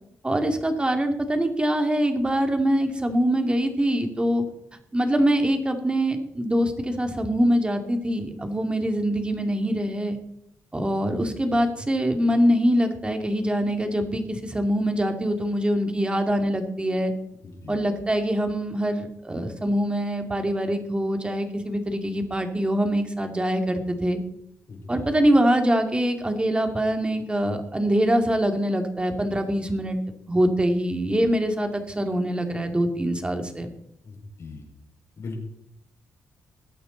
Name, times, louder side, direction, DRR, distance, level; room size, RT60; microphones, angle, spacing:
voice 1, 0.2-4.4 4.9-10.2 10.7-17.1 17.7-24.2 24.9-30.0 30.3-33.7, equal, 20° right, 5 dB, 2.4 m, -24 dB
voice 2, 17.4-17.8 24.7-25.1 34.0-34.6 35.2-35.4, left 3 dB, 60° left, 0 dB, 5.2 m, -38 dB
21.0 x 8.8 x 4.0 m, 0.73 s
cardioid pair, 75°, 5 cm